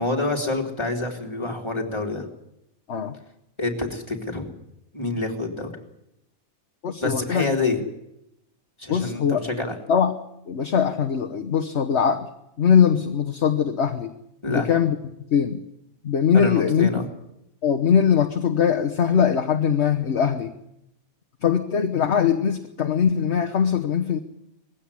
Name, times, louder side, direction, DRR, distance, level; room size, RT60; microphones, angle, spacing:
voice 1, 0.0-2.2 3.6-4.5 4.9-5.7 7.0-7.8 8.8-9.8 14.4-14.7 16.3-17.1, left 2 dB, 20° left, 1 dB, 3.3 m, -27 dB
voice 2, 6.8-7.5 8.9-9.4 9.9-10.1 10.5-12.3 12.6-14.1 14.5-14.9 15.3-15.6 16.0-16.9 17.6-20.5 21.4-24.2, left 7 dB, 50° left, 4 dB, 1.3 m, -21 dB
20.5 x 15.5 x 10.0 m, 0.82 s
omnidirectional pair, 1.5 m